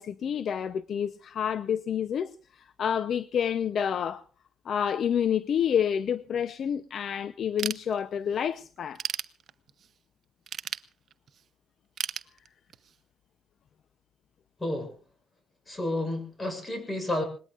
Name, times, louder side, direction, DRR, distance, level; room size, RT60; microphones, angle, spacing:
voice 1, 0.0-2.3 2.8-4.2 4.7-9.0, left 8 dB, 60° left, 0.7 m, -28 dB
Ratchet pawl / Tools, 7.6-8.4 8.8-9.9 10.5-11.4 12.0-13.0, right 8 dB, 60° right, 0.9 m, -35 dB
voice 2, 14.6-14.9 15.7-17.2, left 1 dB, 20° left, 7.6 m, -31 dB
26.5 x 20.0 x 2.5 m
cardioid pair, 90°, 0 cm